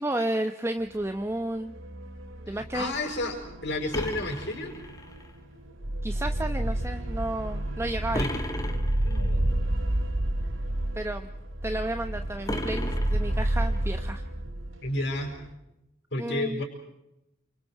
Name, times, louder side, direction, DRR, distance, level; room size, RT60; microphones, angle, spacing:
voice 1, 0.0-1.7 2.5-2.9 6.0-8.3 10.9-11.3 11.6-14.3 16.2-16.6, right 1 dB, 15° right, 7 dB, 0.8 m, -32 dB
sound 1, 0.9-1.2 1.5-15.5, right 1 dB, 70° right, 2.4 m, -31 dB
voice 2, 2.5-4.8 8.1-8.4 9.0-9.6 14.8-15.3 16.1-16.6, left 2 dB, 55° left, 1 dB, 5.4 m, -32 dB
sound 2, 3.9-5.3 8.1-9.3 12.5-13.8, left 1 dB, 15° left, 1.8 m, -34 dB
28.5 x 27.0 x 4.7 m, 0.88 s
head